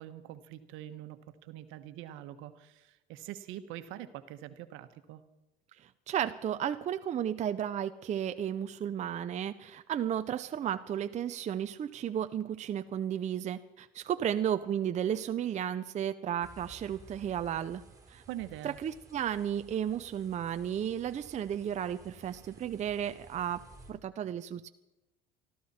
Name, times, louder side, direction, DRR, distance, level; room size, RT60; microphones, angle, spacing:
voice 1, 0.0-5.2 18.3-18.8, right 13 dB, 70° right, 10 dB, 1.3 m, -44 dB
voice 2, 5.8-17.8 18.1-18.2 18.6-23.6 23.9-24.7, right 9 dB, 35° right, 10 dB, 0.6 m, -33 dB
sound 1, 16.4-23.9, right 3 dB, 15° right, 3.1 m, -55 dB
24.0 x 13.5 x 4.3 m, 1.0 s
supercardioid pair, 105°, 21 cm